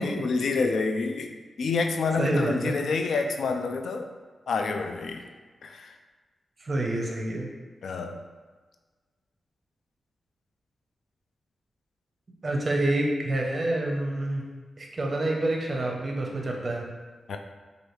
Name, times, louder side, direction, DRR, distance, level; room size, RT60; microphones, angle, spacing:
voice 1, 0.0-1.3 1.6-4.1 4.5-5.3 5.6-6.0 7.8-8.2 17.3-17.4, left 4 dB, 75° left, 5 dB, 0.3 m, -28 dB
voice 2, 2.2-2.8 6.6-7.5 12.4-14.4 14.8-16.8, right 1 dB, 35° right, 0 dB, 0.6 m, -27 dB
4.7 x 2.6 x 3.1 m, 1.4 s
wide cardioid pair, 135°, 0 cm